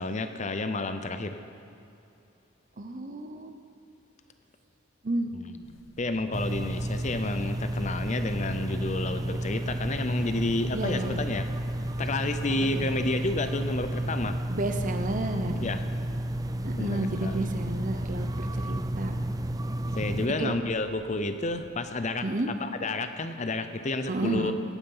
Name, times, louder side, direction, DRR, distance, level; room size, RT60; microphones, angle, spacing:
voice 1, 0.0-1.4 5.3-5.5 6.0-11.5 12.0-14.4 15.6-15.8 16.8-17.5 20.0-22.3 22.6-24.5, left 2 dB, 35° left, 9 dB, 0.6 m, -30 dB
voice 2, 2.8-3.6 5.0-5.8 10.7-11.2 12.7-12.9 14.5-15.7 16.6-19.1 20.4-20.5 22.2-22.5 24.1-24.5, right 2 dB, 40° right, 7 dB, 0.8 m, -32 dB
sound 1, 5.6-21.9, left 1 dB, 70° left, 1.1 m, -52 dB
sound 2, 6.3-20.3, right 1 dB, 15° right, 0.4 m, -32 dB
17.0 x 9.4 x 5.6 m, 2.7 s
head